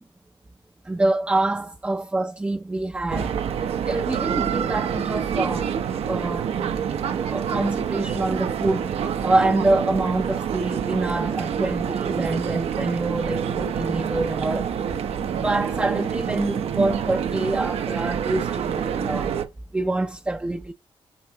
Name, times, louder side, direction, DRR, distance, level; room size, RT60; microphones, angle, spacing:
voice 1, 0.9-3.3 3.9-5.7 6.1-6.5 7.2-8.9 9.2-14.7 15.3-19.3 19.7-20.7, right 2 dB, 10° right, 0.5 m, -26 dB
sound 1, 3.1-19.4, right 8 dB, 85° right, 0.9 m, -27 dB
9.5 x 4.6 x 2.9 m
wide cardioid pair, 150°, 10 cm